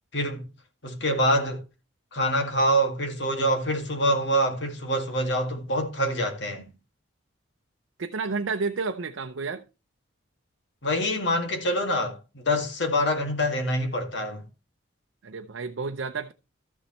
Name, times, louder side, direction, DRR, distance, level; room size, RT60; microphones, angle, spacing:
voice 1, 0.1-0.5 0.8-1.6 2.1-6.7 10.8-14.4, equal, 60° left, 2.1 m, -25 dB
voice 2, 8.0-9.7 15.2-16.3, right 4 dB, 80° right, 0.6 m, -31 dB
13.5 x 7.1 x 3.1 m
head